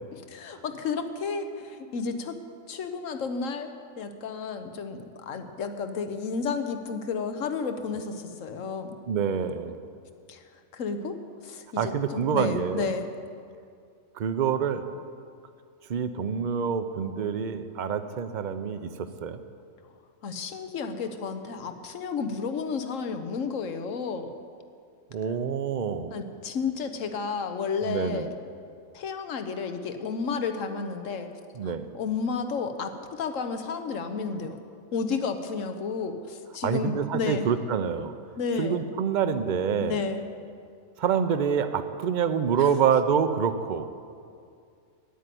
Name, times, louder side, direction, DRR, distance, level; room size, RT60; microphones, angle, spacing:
voice 1, 0.1-2.4 2.7-3.7 4.0-9.0 10.3-10.4 10.7-13.1 20.2-24.3 26.1-28.3 28.9-31.3 31.6-34.6 34.9-37.5 38.4-38.8 39.8-40.3 42.6-42.7, left 5 dB, 70° left, 8 dB, 1.3 m, -32 dB
voice 2, 9.1-9.8 11.8-12.9 14.2-14.8 15.9-19.4 25.1-26.1 27.8-28.3 31.6-31.9 36.6-38.1 38.6-40.0 41.0-43.9, right 7 dB, 50° right, 10 dB, 0.6 m, -27 dB
10.0 x 9.2 x 9.2 m, 2.3 s
omnidirectional pair, 1.4 m